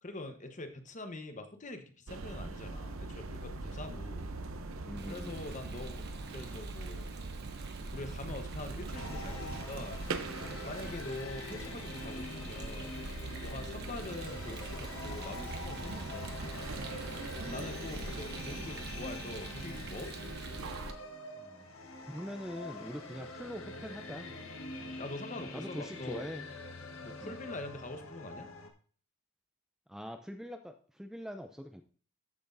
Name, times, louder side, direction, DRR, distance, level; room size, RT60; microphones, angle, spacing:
voice 1, 0.0-4.3 5.1-6.0 6.3-7.1 7.9-10.0 10.4-12.9 13.4-16.6 17.4-20.5 25.0-26.3 27.0-28.5, left 2 dB, 35° left, 7 dB, 1.1 m, -44 dB
sound 1, 2.1-20.9, right 2 dB, 70° right, 0.8 m, -42 dB
voice 2, 4.8-5.4 10.8-11.0 21.4-21.7 22.1-24.3 25.5-26.4 27.2-27.3 29.9-31.8, equal, ahead, 5 dB, 0.5 m, -43 dB
Rain, 5.0-20.9, right 5 dB, 50° right, 1.2 m, -50 dB
sound 2, 8.9-28.7, left 2 dB, 75° left, 1.4 m, -45 dB
13.5 x 6.1 x 2.7 m, 0.43 s
head